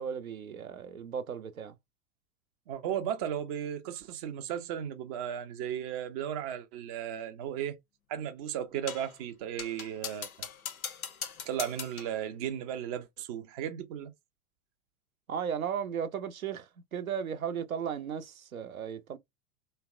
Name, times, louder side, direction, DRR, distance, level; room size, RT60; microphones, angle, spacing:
voice 1, 0.0-1.8 15.3-19.2, right 7 dB, 80° right, 0.6 m, -35 dB
voice 2, 2.7-7.8 8.1-10.5 11.5-14.1, right 9 dB, 30° right, 0.4 m, -35 dB
sound 1, 8.9-9.1 9.6-12.2, left 7 dB, 85° left, 0.5 m, -40 dB
2.8 x 2.0 x 2.3 m
figure-of-eight pair, 90°, 42 cm